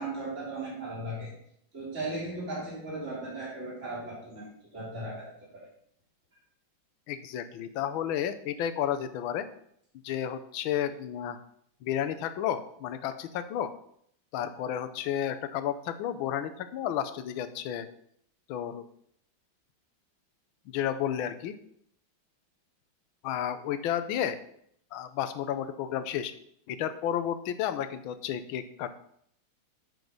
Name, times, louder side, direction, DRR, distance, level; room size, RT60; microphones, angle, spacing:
voice 1, 0.0-1.3 1.7-5.7, right 2 dB, 35° right, -5 dB, 3.2 m, -37 dB
voice 2, 7.1-9.5 10.0-11.4 11.8-13.7 14.3-17.9 18.5-18.8 20.7-21.5 23.2-24.4 24.9-26.3 26.7-28.9, left 10 dB, 80° left, 11 dB, 1.5 m, -32 dB
7.8 x 6.3 x 5.3 m, 0.68 s
omnidirectional pair, 2.2 m